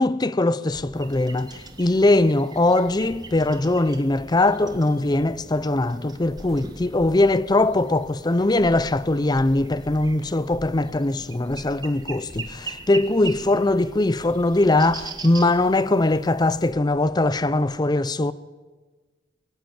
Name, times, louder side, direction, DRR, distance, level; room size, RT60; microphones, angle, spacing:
voice 1, 0.0-18.3, left 2 dB, 20° left, 0.6 m, -21 dB
sound 1, 0.7-17.6, equal, ahead, 3.5 m, -46 dB
sound 2, 0.9-16.7, right 4 dB, 20° right, 1.5 m, -42 dB
22.0 x 16.5 x 9.2 m
head